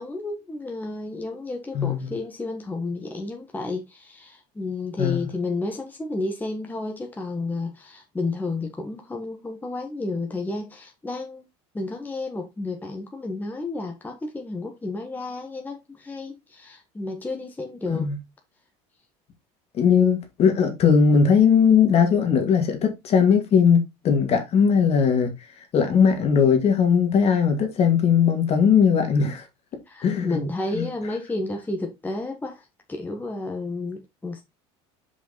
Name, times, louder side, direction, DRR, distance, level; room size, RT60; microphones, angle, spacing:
voice 1, 0.0-11.5 11.7-18.1 29.9-34.4, left 3 dB, 10° left, 1.3 m, -31 dB
voice 2, 1.7-2.1 5.0-5.3 17.9-18.2 19.8-25.3 25.7-29.4 30.0-30.4 30.7-30.8, left 6 dB, 45° left, 2.2 m, -19 dB
5.5 x 5.0 x 4.1 m
supercardioid pair, 110°, 14 cm